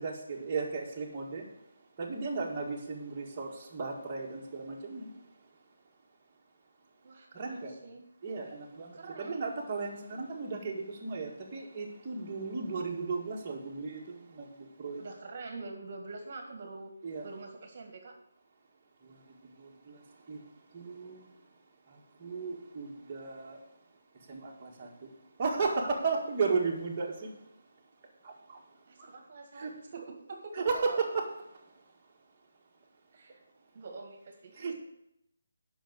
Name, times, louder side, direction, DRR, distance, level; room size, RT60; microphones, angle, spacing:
voice 1, 0.0-1.4 2.0-5.1 7.3-7.7 8.2-15.0 17.0-17.3 19.0-19.2 19.6-20.0 20.3-20.4 20.7-21.3 21.9-23.6 24.3-25.1 25.4-27.3 28.2-28.6 29.0-29.1 29.6-29.7 30.5-31.3 34.6-34.7, right 4 dB, 25° right, -3 dB, 1.9 m, -35 dB
voice 2, 7.0-8.0 8.9-9.4 15.0-16.9 17.2-18.1 28.9-30.6 33.1-33.4 33.7-34.5, right 3 dB, 40° right, 3 dB, 1.8 m, -45 dB
8.2 x 5.9 x 7.9 m, 0.81 s
hypercardioid pair, 170°, 0 cm